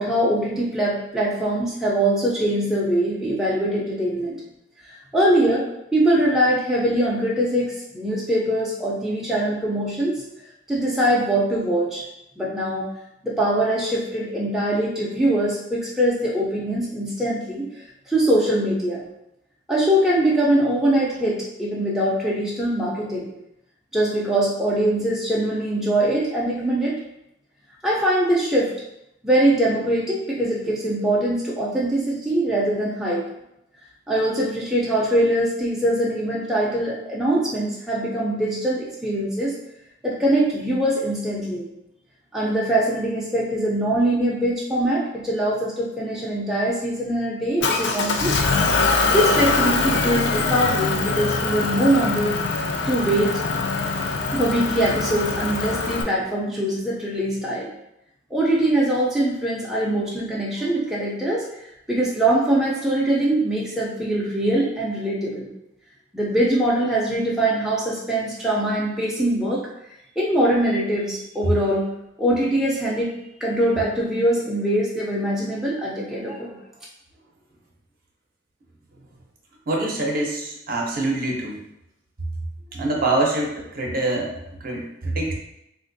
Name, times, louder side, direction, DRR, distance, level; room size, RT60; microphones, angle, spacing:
voice 1, 0.0-4.4 4.8-5.7 5.9-10.2 10.7-12.0 12.4-12.9 13.2-19.0 19.7-23.3 23.9-27.0 27.8-28.7 29.2-33.2 34.1-39.5 40.0-41.7 42.3-48.4 49.1-53.4 54.3-57.7 58.3-61.5 61.9-65.5 66.1-69.6 70.2-71.9 72.2-73.1 73.4-76.6, right 1 dB, ahead, -6 dB, 0.4 m, -22 dB
Motor vehicle (road) / Engine, 47.6-56.0, left 4 dB, 60° left, 0.4 m, -23 dB
voice 2, 79.7-81.6 82.7-84.3 84.6-85.3, right 2 dB, 45° right, -1 dB, 0.6 m, -25 dB
3.6 x 2.5 x 2.5 m, 0.83 s
head